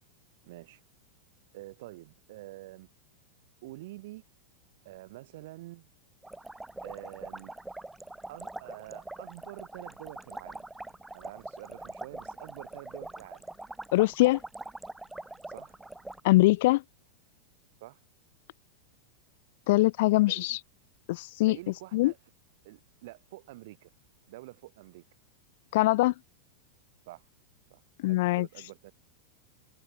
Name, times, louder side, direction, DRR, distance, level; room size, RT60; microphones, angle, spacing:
voice 1, 0.4-0.8 1.5-2.9 3.6-4.2 4.8-5.9 6.8-7.5 8.3-10.7 11.1-13.5 15.5-15.8 17.8-18.0 20.2-20.6 21.5-22.2 22.6-23.9 24.3-25.0 27.1-27.3 27.7-27.8 28.1-28.9, right 18 dB, 50° right, 3.9 m, -47 dB
sound 1, 6.2-16.2, right 2 dB, 5° right, 2.2 m, -43 dB
voice 2, 13.9-14.4 16.2-16.8 19.7-20.6 21.1-21.6 21.9-22.1 25.7-26.1 28.0-28.5, left 19 dB, 50° left, 0.3 m, -23 dB
figure-of-eight pair, 90°, 0 cm